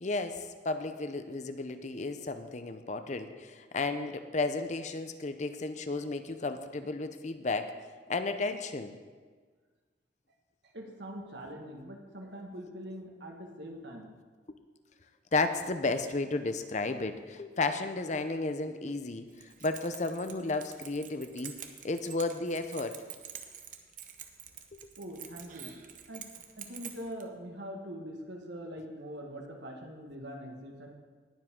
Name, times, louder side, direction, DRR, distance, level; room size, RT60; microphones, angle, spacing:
voice 1, 0.0-7.7 8.1-8.9 15.3-21.6 21.8-23.0 24.7-24.9, left 3 dB, 40° left, 9 dB, 0.6 m, -33 dB
voice 2, 10.6-14.1 25.0-25.7 26.1-26.3 26.6-30.9, equal, 70° right, 2 dB, 1.6 m, -43 dB
Keys jangling, 19.3-27.2, right 9 dB, 45° right, 0.8 m, -47 dB
19.0 x 7.4 x 3.7 m, 1.5 s
head